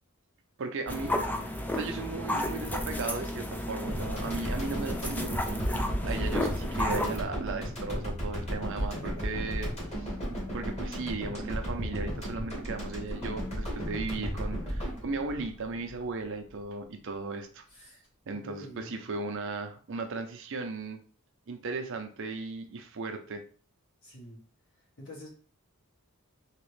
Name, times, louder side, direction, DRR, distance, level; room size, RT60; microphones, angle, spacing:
voice 1, 0.6-5.4 6.0-10.1 10.5-17.9 18.3-21.0 21.5-23.4, right 3 dB, 60° right, 6 dB, 0.6 m, -36 dB
sound 1, 0.9-7.2, left 1 dB, 10° left, 0.3 m, -33 dB
sound 2, 3.9-16.3, equal, 30° left, 1.5 m, -34 dB
voice 2, 8.7-9.3 17.7-18.0 18.3-18.9 24.0-24.4 25.0-25.3, left 1 dB, 65° left, -4 dB, 1.6 m, -46 dB
3.2 x 2.9 x 3.2 m, 0.42 s
head